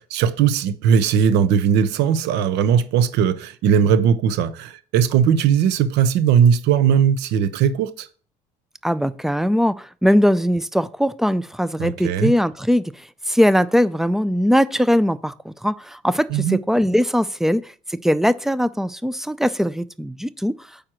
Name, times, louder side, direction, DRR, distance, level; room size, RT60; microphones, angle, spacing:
voice 1, 0.0-8.1 11.8-12.3 16.3-16.6, right 8 dB, 85° right, 0.6 m, -18 dB
voice 2, 8.8-12.9 13.3-20.6, equal, ahead, 0.3 m, -20 dB
4.9 x 4.4 x 6.1 m
cardioid pair, 110°, 17 cm